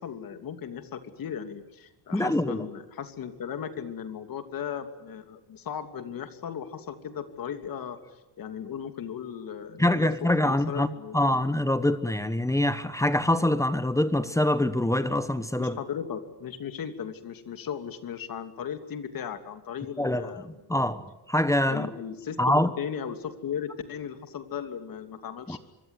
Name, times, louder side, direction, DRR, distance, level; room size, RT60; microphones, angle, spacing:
voice 1, 0.0-8.0 8.4-10.1 10.4-11.4 15.6-20.5 21.7-25.6, left 8 dB, 50° left, 2.9 m, -36 dB
voice 2, 2.1-2.7 9.8-15.8 20.0-21.9 22.4-22.7 25.5-25.6, left 1 dB, 5° left, 1.0 m, -25 dB
25.0 x 23.5 x 9.8 m
cardioid pair, 145°, 43 cm